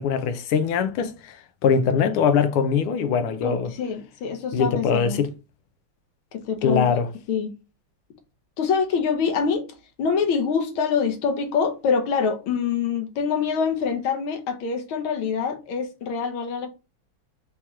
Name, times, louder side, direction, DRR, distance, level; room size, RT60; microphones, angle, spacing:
voice 1, 0.0-1.4 1.6-3.7 4.5-5.3 6.6-7.1, left 6 dB, 90° left, 1.6 m, -22 dB
voice 2, 3.4-5.2 6.3-6.9 7.3-7.5 8.6-9.7 10.0-16.7, left 6 dB, 75° left, 1.6 m, -25 dB
4.6 x 2.9 x 3.4 m
omnidirectional pair, 2.4 m